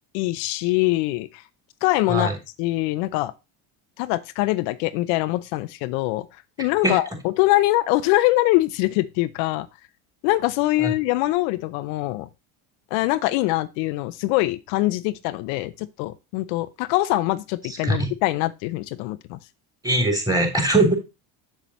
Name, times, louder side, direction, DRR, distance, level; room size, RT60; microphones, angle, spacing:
voice 1, 0.1-1.4 1.8-2.3 2.6-3.3 4.0-6.3 6.6-9.7 10.2-12.3 12.9-19.4, left 18 dB, 80° left, 0.6 m, -23 dB
voice 2, 19.8-21.0, right 1 dB, 10° right, 3.0 m, -20 dB
7.2 x 6.8 x 3.0 m
supercardioid pair, 90°, 46 cm